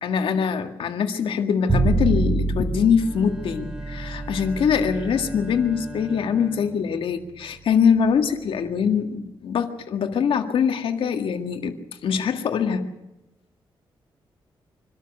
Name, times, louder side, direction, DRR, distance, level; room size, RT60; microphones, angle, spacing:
voice 1, 0.0-11.8 12.0-12.9, left 6 dB, 85° left, 6 dB, 1.9 m, -23 dB
Bowed string instrument, 1.7-7.8, right 3 dB, 25° right, 6.5 m, -28 dB
Bowed string instrument 2, 3.0-7.6, right 1 dB, 5° right, 2.7 m, -41 dB
24.5 x 13.0 x 9.6 m, 0.96 s
wide cardioid pair, 115°, 9 cm